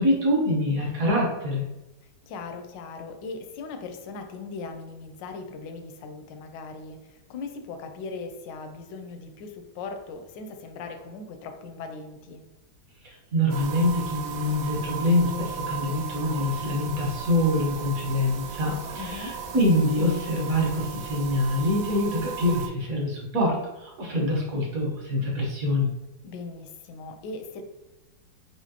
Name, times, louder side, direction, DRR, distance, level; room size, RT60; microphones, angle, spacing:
voice 1, 0.0-1.7 13.0-25.9, left 1 dB, 55° right, -2 dB, 1.2 m, -25 dB
voice 2, 2.0-12.4 19.0-19.4 26.2-27.6, left 4 dB, 75° left, 6 dB, 1.1 m, -39 dB
sound 1, 13.5-22.7, right 6 dB, 75° right, 1.0 m, -36 dB
5.0 x 2.5 x 2.8 m, 1.0 s
omnidirectional pair, 2.3 m